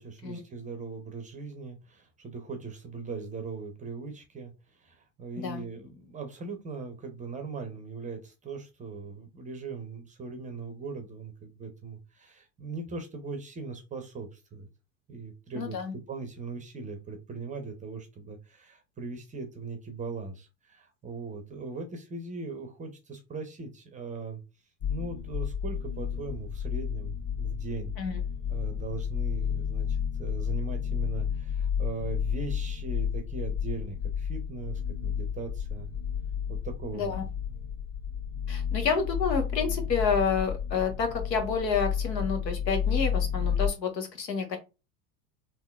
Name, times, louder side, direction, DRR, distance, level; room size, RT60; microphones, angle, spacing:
voice 1, 0.0-4.5 4.8-14.7 15.1-24.4 24.9-28.0 28.5-35.9 36.5-37.1, right 4 dB, 15° right, 6 dB, 0.6 m, -39 dB
voice 2, 15.5-15.9 28.0-28.2 36.9-37.2 38.5-44.6, left 5 dB, 75° left, 4 dB, 1.2 m, -29 dB
sound 1, 24.8-43.7, left 8 dB, 55° left, 1.7 m, -31 dB
3.6 x 2.7 x 2.3 m, 0.27 s
figure-of-eight pair, 85°, 50 cm